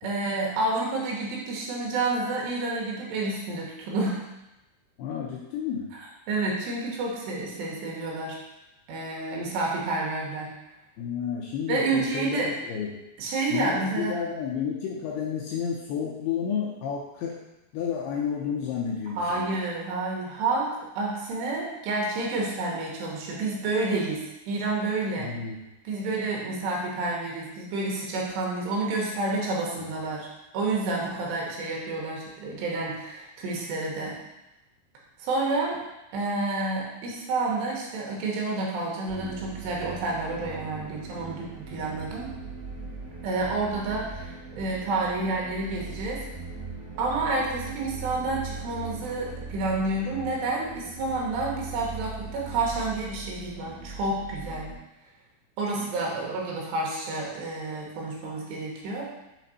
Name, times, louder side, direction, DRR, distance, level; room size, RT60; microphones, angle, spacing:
voice 1, 0.0-4.2 6.3-8.4 8.9-10.5 11.7-12.5 13.2-14.1 19.2-25.3 25.8-30.3 30.5-34.2 35.2-35.8 36.1-42.3 43.2-46.2 47.0-54.7 55.6-59.1, right 3 dB, 80° right, -2 dB, 3.1 m, -29 dB
voice 2, 5.0-5.9 11.0-12.9 13.5-17.4 17.7-19.6 25.2-25.6 55.7-56.0, left 7 dB, 85° left, -2 dB, 2.4 m, -31 dB
sound 1, 39.1-54.8, right 4 dB, 65° right, 3.3 m, -40 dB
7.2 x 3.4 x 4.0 m, 0.94 s
omnidirectional pair, 5.1 m